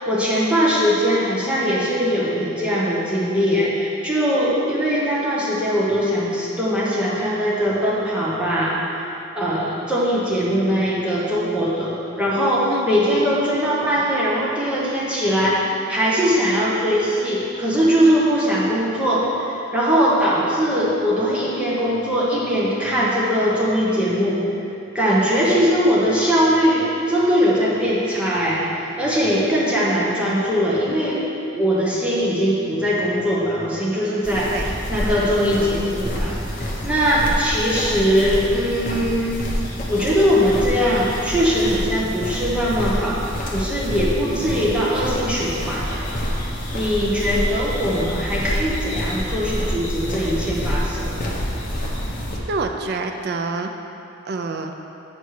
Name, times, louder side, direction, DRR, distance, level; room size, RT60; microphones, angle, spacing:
voice 1, 0.1-9.1 9.4-24.4 24.9-31.2 31.5-39.4 39.9-43.2 43.5-46.0 46.3-46.4 46.7-51.3, equal, 5° right, -8 dB, 1.1 m, -21 dB
sound 1, 34.2-52.4, equal, 40° left, 1.0 m, -27 dB
voice 2, 52.5-53.7 54.3-54.7, right 3 dB, 50° right, 5 dB, 0.4 m, -27 dB
7.9 x 5.4 x 4.8 m, 2.8 s
head